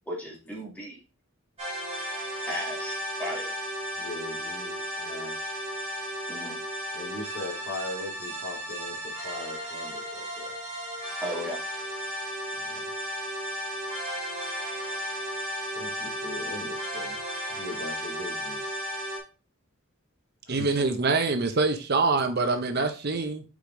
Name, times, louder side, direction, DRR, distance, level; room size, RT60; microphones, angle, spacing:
voice 1, 0.1-1.0 2.5-3.5 6.3-6.6 11.2-11.6, equal, 5° left, 2.1 m, -35 dB
sound 1, 1.6-19.2, equal, 25° right, 3.0 m, -34 dB
voice 2, 4.0-5.6 6.9-10.5 12.6-12.9 15.7-17.2 17.5-18.8 20.5-20.8, left 2 dB, 55° left, 2.6 m, -40 dB
voice 3, 20.5-23.4, right 3 dB, 50° right, 0.7 m, -25 dB
5.1 x 4.9 x 3.8 m
head